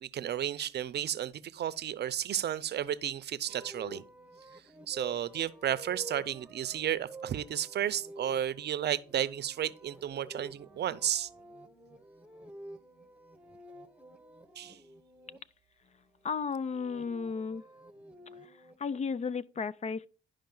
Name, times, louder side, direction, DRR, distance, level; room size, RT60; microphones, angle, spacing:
voice 1, 0.0-4.0 4.9-11.3 14.6-14.8, right 10 dB, 55° right, 0.6 m, -33 dB
sound 1, 3.5-15.4 16.5-18.7, right 1 dB, 5° right, 1.1 m, -49 dB
voice 2, 16.2-17.6 18.4-18.5 18.8-20.1, left 5 dB, 35° left, 0.4 m, -34 dB
11.5 x 5.0 x 3.9 m
cardioid pair, 90°, 20 cm